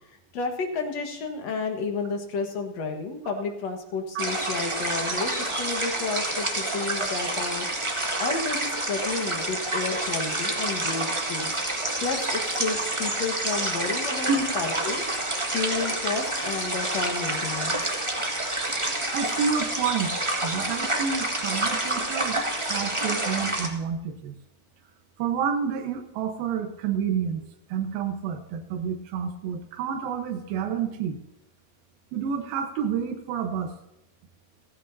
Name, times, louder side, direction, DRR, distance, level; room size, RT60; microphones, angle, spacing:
voice 1, 0.3-7.7 7.9-11.5 12.0-15.0 15.5-17.9, left 4 dB, 55° left, 4 dB, 2.3 m, -31 dB
sound 1, 4.2-23.7, right 1 dB, 45° right, 0.4 m, -28 dB
voice 2, 19.1-20.1 20.4-24.4 25.2-27.4 27.7-31.2 32.1-33.7, right 7 dB, 80° right, 4 dB, 3.0 m, -29 dB
16.0 x 15.5 x 2.7 m, 0.88 s
omnidirectional pair, 4.2 m